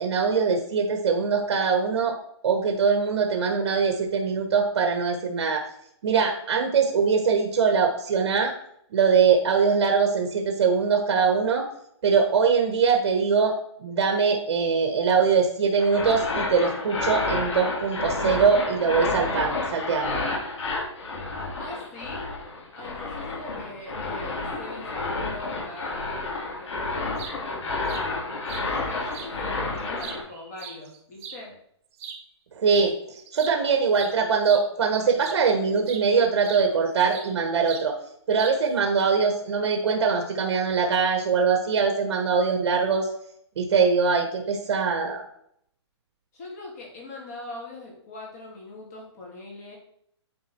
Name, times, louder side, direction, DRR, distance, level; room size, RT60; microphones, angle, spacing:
voice 1, 0.0-2.2 2.4-5.6 6.0-8.5 8.9-11.6 12.0-20.2 32.5-38.0 38.3-43.1 43.6-45.2, right 5 dB, 55° right, 3 dB, 1.2 m, -22 dB
sound 1, 15.8-30.2, left 3 dB, 80° left, 3.2 m, -30 dB
voice 2, 21.6-22.2 22.7-26.3 26.5-28.4 28.7-31.5 46.3-49.8, left 2 dB, 35° left, -2 dB, 2.6 m, -42 dB
sound 2, 27.0-27.4 27.9-28.1 28.5-28.7 29.1-29.3 29.8-31.4 31.9-32.2 32.7-32.9 33.2-35.5 35.8-36.1 36.4-37.3 37.7-37.9 38.4-38.8, right 7 dB, 30° right, 0.9 m, -40 dB
9.4 x 4.4 x 4.4 m, 0.70 s
hypercardioid pair, 165°, 15 cm